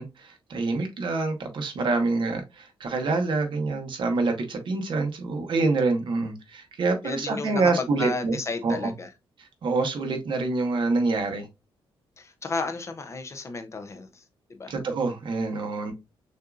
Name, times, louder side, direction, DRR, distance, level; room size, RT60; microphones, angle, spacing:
voice 1, 0.0-8.4 8.6-8.9 9.4-11.5 14.7-15.9, right 3 dB, 55° right, 1.1 m, -26 dB
voice 2, 7.0-9.1 12.2-14.2 14.5-14.7, left 3 dB, 30° left, 0.5 m, -33 dB
6.4 x 2.6 x 2.4 m
wide cardioid pair, 175°, 10 cm